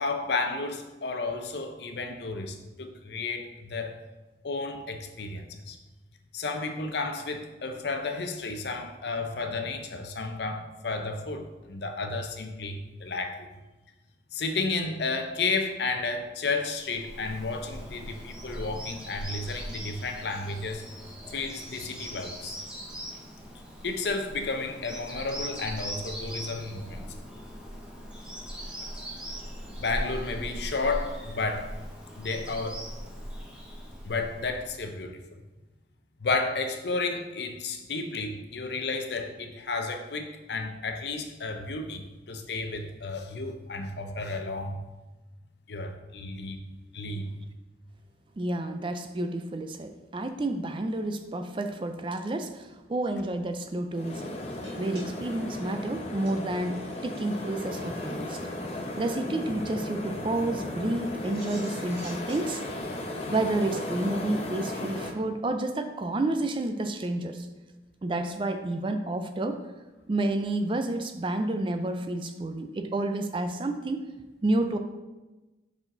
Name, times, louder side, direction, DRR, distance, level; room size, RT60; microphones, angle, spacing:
voice 1, 0.0-4.0 4.4-5.8 6.3-13.5 14.3-20.8 21.3-22.6 23.8-27.1 29.7-31.7 32.1-32.8 34.0-35.4 36.2-44.8 45.7-46.6 46.9-47.3, left 3 dB, 65° left, 6 dB, 0.6 m, -32 dB
Bird vocalization bird call bird song, 16.8-34.8, equal, 5° right, 0.9 m, -40 dB
voice 2, 48.4-54.3 54.8-58.4 58.7-62.6 63.3-67.5 68.0-69.6 70.1-74.0 74.4-74.8, right 2 dB, 30° right, 7 dB, 0.4 m, -30 dB
sound 1, 53.9-65.1, left 1 dB, 35° left, 0.7 m, -36 dB
sound 2, 54.6-56.9 57.1-57.4 57.6-57.7 57.9-58.0 61.0-62.8, right 2 dB, 75° right, 1.8 m, -50 dB
5.6 x 4.9 x 3.8 m, 1.1 s
head